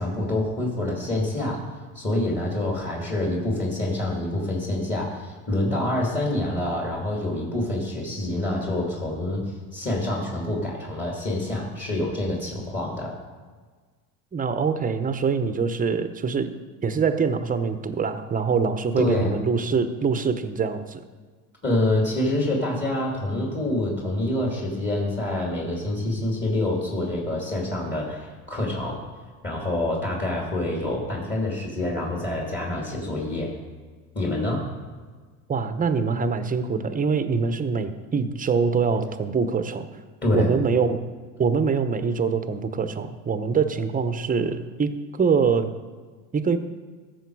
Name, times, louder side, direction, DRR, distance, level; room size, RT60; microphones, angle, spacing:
voice 1, 0.0-1.6 1.9-13.1 19.0-19.4 21.6-29.0 29.4-33.5 34.1-34.6 40.2-40.5, left 1 dB, 25° left, -2 dB, 2.8 m, -26 dB
voice 2, 14.3-16.5 16.8-21.0 35.5-39.8 40.3-41.0 41.4-45.7 46.3-46.6, right 5 dB, 20° right, 10 dB, 0.8 m, -24 dB
14.5 x 6.4 x 4.7 m, 1.5 s
supercardioid pair, 95°, 41 cm